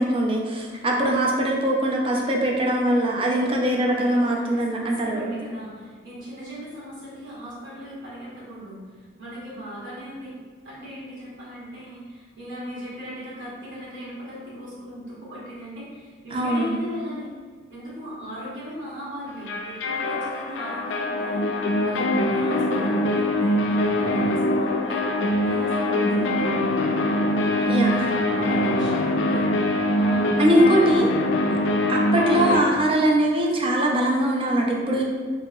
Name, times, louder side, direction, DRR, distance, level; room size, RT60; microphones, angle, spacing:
voice 1, 0.0-5.3 16.3-16.8 27.7-28.1 30.4-31.1 31.9-35.0, right 1 dB, 30° right, -1 dB, 0.4 m, -22 dB
voice 2, 3.1-3.5 3.9-10.3 10.6-17.3 17.7-21.4 21.8-27.0 27.4-31.0, equal, 75° right, -9 dB, 1.2 m, -38 dB
sound 1, 19.5-32.6, left 1 dB, 70° left, 0.3 m, -23 dB
3.0 x 2.7 x 2.3 m, 1.5 s
head